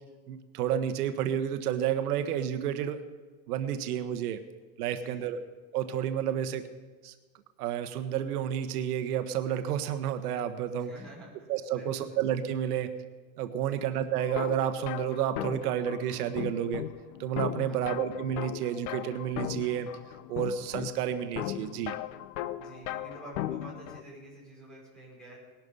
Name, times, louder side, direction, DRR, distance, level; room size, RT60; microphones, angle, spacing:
voice 1, 0.3-3.0 3.5-4.4 4.8-5.4 5.7-6.6 7.0-7.1 7.6-10.9 11.5-12.9 13.4-16.8 17.2-19.9 20.3-22.0, right 9 dB, 90° right, 9 dB, 1.2 m, -30 dB
voice 2, 4.9-5.3 6.3-6.4 10.8-12.2 13.6-13.9 17.6-18.0 22.6-25.4, right 2 dB, ahead, -5 dB, 5.4 m, -49 dB
sound 1, 14.2-24.0, left 14 dB, 85° left, 0.8 m, -38 dB
19.0 x 12.0 x 5.5 m, 1.4 s
supercardioid pair, 160°, 44 cm